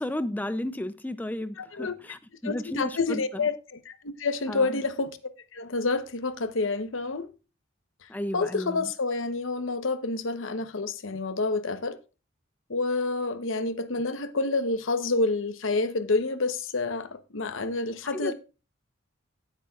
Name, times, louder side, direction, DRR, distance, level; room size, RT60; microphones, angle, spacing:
voice 1, 0.0-3.4 4.5-4.8 8.1-8.9 18.0-18.3, left 1 dB, 10° left, 0.4 m, -33 dB
voice 2, 1.6-1.9 2.4-5.2 5.5-7.3 8.0-12.0 12.7-18.3, left 3 dB, 75° left, 0.9 m, -28 dB
15.5 x 8.3 x 2.4 m
head